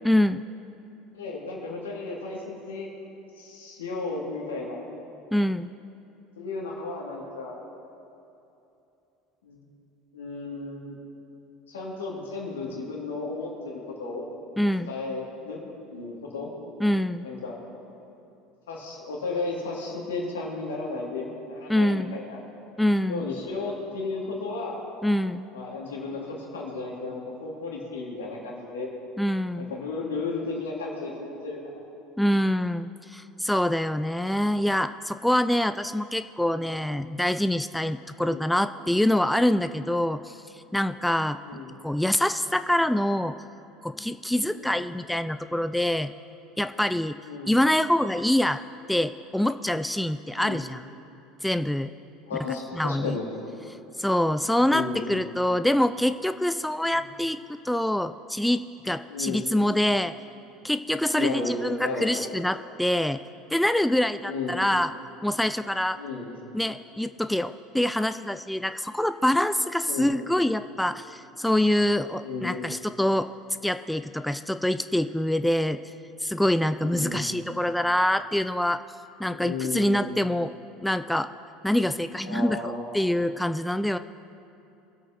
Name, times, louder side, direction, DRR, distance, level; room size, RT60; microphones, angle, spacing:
voice 1, 0.0-0.4 5.3-5.7 14.6-14.9 16.8-17.2 21.7-22.2 22.8-23.4 25.0-25.5 29.2-29.7 32.2-41.4 41.8-43.4 43.8-46.1 46.6-47.2 47.5-48.6 48.9-50.9 51.4-51.9 52.7-53.2 54.0-60.1 60.6-63.2 63.5-64.9 65.2-66.0 66.5-73.3 73.6-75.9 76.2-78.8 79.2-80.5 80.8-81.3 81.6-84.0, left 1 dB, 5° left, 11 dB, 0.3 m, -25 dB
voice 2, 1.1-2.9 3.4-4.8 6.4-7.6 9.4-9.6 10.1-11.0 11.7-14.2 14.9-15.6 15.9-16.5 17.2-17.6 18.7-22.4 23.1-24.8 25.5-28.9 29.6-31.8 38.3-38.4 41.4-41.7 44.5-44.7 47.2-47.5 50.4-50.6 52.2-53.2 54.7-55.0 56.8-57.0 59.1-59.5 61.1-61.5 61.8-62.1 64.2-64.6 66.0-66.3 69.8-70.1 72.2-72.7 76.8-77.3 79.3-80.1 82.2-82.9, left 3 dB, 85° left, -3 dB, 2.6 m, -34 dB
24.5 x 8.1 x 3.0 m, 2.9 s
hypercardioid pair, 75°, 0 cm